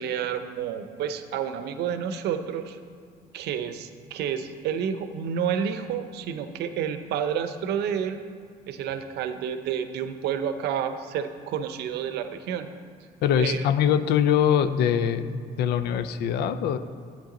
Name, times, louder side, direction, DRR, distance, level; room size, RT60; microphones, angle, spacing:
voice 1, 0.0-2.8 3.3-8.2 8.7-12.7 13.4-13.6, right 8 dB, 80° right, 10 dB, 0.7 m, -30 dB
voice 2, 13.2-16.8, left 8 dB, 75° left, 11 dB, 0.5 m, -23 dB
10.5 x 8.8 x 3.9 m, 2.3 s
cardioid pair, 110°, 17 cm